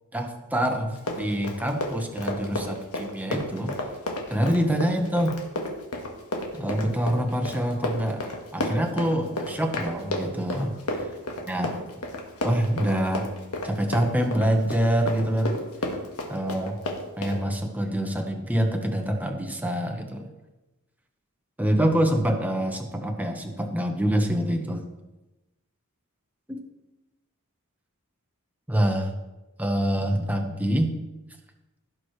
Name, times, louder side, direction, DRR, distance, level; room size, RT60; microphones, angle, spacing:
voice 1, 0.1-3.7 4.3-5.3 6.5-8.3 8.5-10.7 11.5-11.8 12.4-13.3 13.6-15.6 16.3-16.8 17.2-20.3 21.6-24.8 26.5-26.6 28.7-29.1 29.6-30.9, right 1 dB, 5° right, 3 dB, 1.1 m, -25 dB
Run, 0.9-17.4, left 1 dB, 80° left, 1.6 m, -32 dB
16.5 x 6.1 x 3.2 m, 1.0 s
head